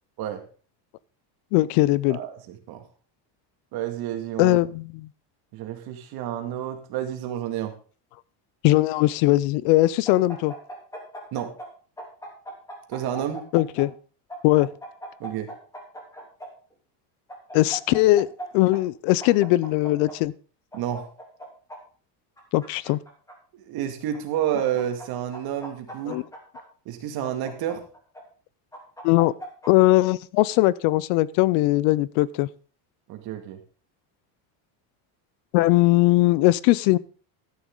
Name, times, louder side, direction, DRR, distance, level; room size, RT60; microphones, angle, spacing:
voice 1, 1.5-2.2 4.4-5.1 8.6-10.5 13.5-13.9 14.4-14.7 17.5-18.3 18.5-20.3 22.5-23.0 26.1-26.2 29.0-29.3 29.7-32.5 35.5-37.0, left 18 dB, 70° left, 21 dB, 0.6 m, -20 dB
voice 2, 2.1-2.8 3.7-4.6 5.5-7.7 11.3-11.5 12.9-13.4 15.2-15.5 20.7-21.0 23.5-26.2 26.9-27.8 33.1-33.6, right 10 dB, 50° right, 5 dB, 2.2 m, -30 dB
sound 1, 10.0-11.7 12.0-13.8 14.3-16.5 17.3-18.4 18.7-18.8 19.2-20.1 20.7-21.8 22.4-23.3 24.1-25.0 25.3-26.6 27.2-28.2 28.7-29.7, right 1 dB, 5° left, 3.1 m, -39 dB
12.5 x 10.5 x 3.9 m, 0.39 s
cardioid pair, 165°, 46 cm